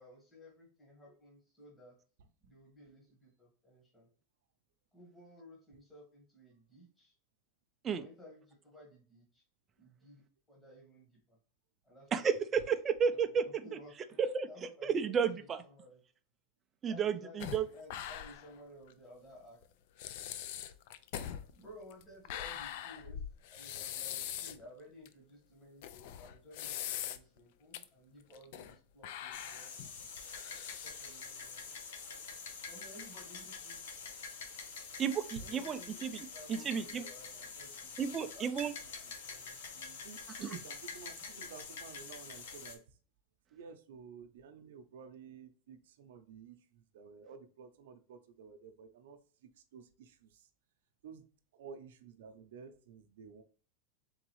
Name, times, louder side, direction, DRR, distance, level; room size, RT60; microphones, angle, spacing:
voice 1, 0.0-2.0 2.4-4.1 4.9-7.1 7.9-9.4 9.8-11.2 11.8-12.3 12.7-12.8 13.1-13.9 14.5-16.0 16.9-19.6 21.5-23.2 23.5-30.1 30.8-31.6 32.7-33.9 35.4-38.7 39.0-40.1, equal, 10° left, -4 dB, 1.5 m, -56 dB
voice 2, 12.1-13.6 14.2-14.5 14.8-15.6 16.8-17.7 35.0-37.0 38.0-38.7 40.4-40.6, right 7 dB, 20° right, 8 dB, 0.4 m, -32 dB
sound 1, 17.4-18.6 18.9-19.0 19.6-19.7 20.0-24.6 25.0-25.1 25.8-27.4 27.7-27.8 28.3-28.8 29.0-31.2, left 10 dB, 55° left, 0.4 m, -42 dB
sound 2, 29.3-42.8, left 5 dB, 90° left, 1.0 m, -46 dB
voice 3, 40.0-43.0 43.5-49.2 49.7-50.5 51.0-51.3 51.5-53.4, right 6 dB, 80° right, 8 dB, 0.6 m, -52 dB
4.0 x 3.5 x 3.1 m, 0.42 s
supercardioid pair, 165°, 0 cm